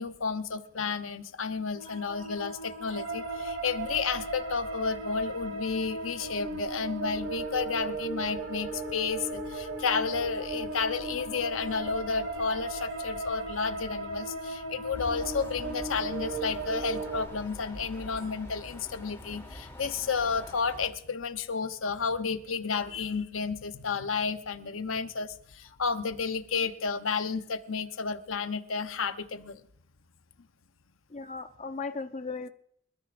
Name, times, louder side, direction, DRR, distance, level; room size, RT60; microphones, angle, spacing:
voice 1, 0.0-29.6, left 5 dB, 80° left, 0.9 m, -32 dB
sound 1, 1.7-17.3, right 2 dB, 70° right, 2.1 m, -36 dB
sound 2, 14.9-20.9, left 1 dB, 15° left, 3.0 m, -45 dB
voice 2, 31.1-32.5, left 4 dB, 35° left, 0.8 m, -36 dB
29.0 x 14.0 x 2.6 m
head